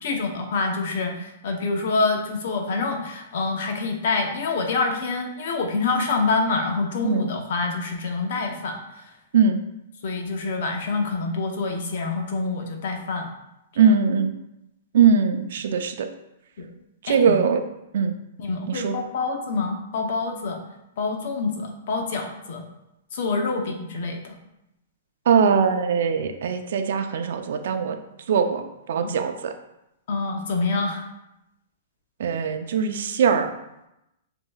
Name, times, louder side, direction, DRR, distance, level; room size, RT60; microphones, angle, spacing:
voice 1, 0.0-8.8 10.0-13.3 13.8-13.9 16.6-16.7 17.1-17.4 18.4-20.6 21.0-22.6 23.1-24.3 29.0-29.1 30.1-31.0, left 3 dB, 60° left, 3 dB, 0.8 m, -26 dB
voice 2, 13.8-14.3 14.9-16.1 17.0-17.6 17.9-18.1 18.7-19.0 25.3-28.0 28.3-29.5 32.2-33.5, right 6 dB, 70° right, 7 dB, 0.5 m, -21 dB
7.2 x 2.9 x 2.3 m, 0.88 s
hypercardioid pair, 150°, 0 cm